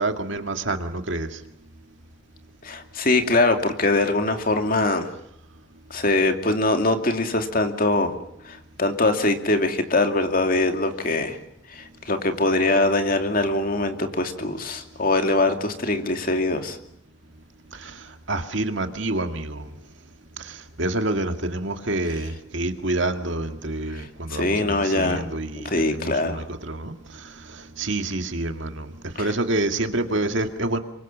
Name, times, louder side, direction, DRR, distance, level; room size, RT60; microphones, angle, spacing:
voice 1, 0.0-1.4 17.7-19.7 20.4-30.8, right 2 dB, 60° right, 6 dB, 2.1 m, -28 dB
voice 2, 2.6-5.1 5.9-8.1 8.5-11.4 11.7-16.8 23.9-24.0 24.3-25.3 25.5-26.4 29.2-29.3, left 2 dB, 45° left, 6 dB, 2.5 m, -22 dB
27.5 x 24.5 x 7.4 m, 0.74 s
head